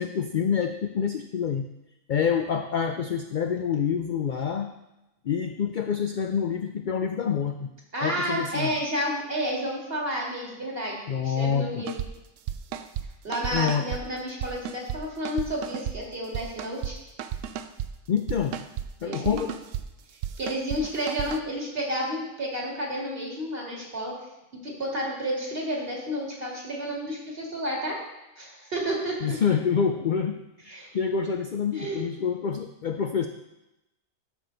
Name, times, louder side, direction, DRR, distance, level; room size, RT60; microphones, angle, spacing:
voice 1, 0.0-1.7 2.1-4.7 5.2-7.7 8.0-8.8 11.1-11.9 13.5-13.9 18.1-18.6 19.0-19.5 29.2-33.3, left 7 dB, 70° left, 6 dB, 0.4 m, -27 dB
voice 2, 7.9-11.0 11.2-12.0 13.2-17.0 19.0-19.4 20.4-24.1 24.6-28.0 28.4-29.3 30.7-30.9 31.7-32.0, equal, 45° right, -3 dB, 2.4 m, -31 dB
sound 1, 11.9-12.1 12.5-13.1 13.3-14.0 14.4-16.0 16.3-16.9 17.2-17.9 18.3-18.9 19.1-19.8 20.2-21.4, right 10 dB, 70° right, 0.9 m, -33 dB
12.5 x 6.1 x 4.0 m, 0.95 s
omnidirectional pair, 1.4 m